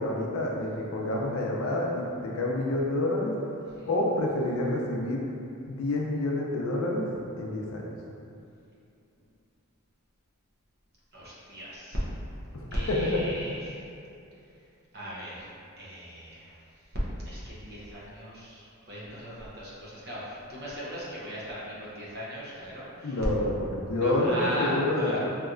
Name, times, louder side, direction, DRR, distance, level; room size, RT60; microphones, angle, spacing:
voice 1, 0.0-3.3 3.9-5.2 5.7-7.1 7.4-7.9 12.5-13.2 23.0-25.2, left 1 dB, 65° left, -2 dB, 0.5 m, -28 dB
voice 2, 11.1-12.1 12.7-13.9 14.9-15.5 15.8-16.6 17.2-23.2 23.9-25.2, equal, 45° right, -7 dB, 0.8 m, -37 dB
3.2 x 2.8 x 2.5 m, 2.6 s
head